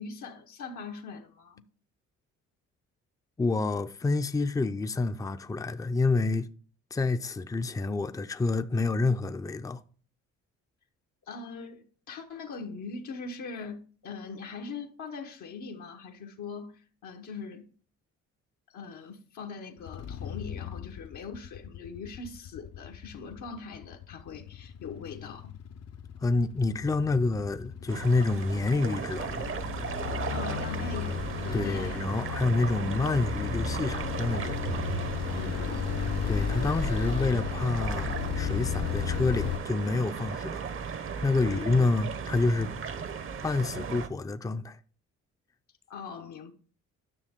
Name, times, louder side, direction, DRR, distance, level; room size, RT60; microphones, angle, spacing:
voice 1, 0.0-1.6 11.3-17.7 18.7-25.6 30.3-32.0 35.3-35.9 41.4-41.8 45.9-46.5, left 4 dB, 75° left, 1.1 m, -41 dB
voice 2, 3.4-6.5 6.9-9.8 26.2-29.5 31.5-34.6 36.3-40.6 41.2-42.7 43.4-44.8, left 3 dB, 10° left, 0.5 m, -28 dB
sound 1, 19.8-39.6, left 9 dB, 60° left, 0.6 m, -35 dB
sound 2, 27.9-44.1, right 6 dB, 45° right, 0.8 m, -36 dB
10.0 x 6.2 x 3.6 m
cardioid pair, 90°, 30 cm